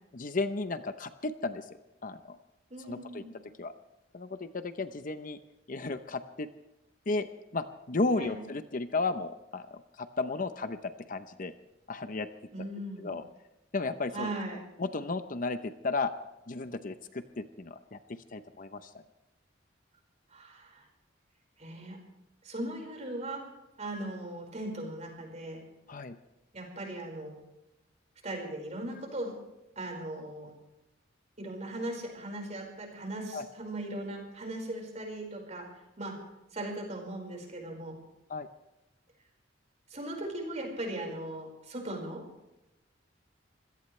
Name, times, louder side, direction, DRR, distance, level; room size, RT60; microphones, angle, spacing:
voice 1, 0.1-1.6 2.0-2.4 2.8-3.2 3.6-3.7 4.1-5.4 5.7-6.5 7.1-7.3 7.5-11.5 11.9-12.3 13.0-13.2 13.7-14.3 14.8-16.1 16.5-18.9 23.4-23.5 25.9-26.2 33.3-33.4 38.3-38.5, left 3 dB, 45° left, 10 dB, 0.8 m, -34 dB
voice 2, 2.7-3.3 8.2-8.4 12.5-13.1 14.1-14.7 20.3-20.8 21.6-22.0 22.4-23.4 23.8-25.6 26.5-27.3 28.2-29.3 29.7-30.5 31.4-35.7 36.0-36.2 36.5-37.9 39.9-42.2, right 1 dB, 35° right, 2 dB, 5.1 m, -38 dB
26.0 x 17.0 x 3.3 m, 0.97 s
head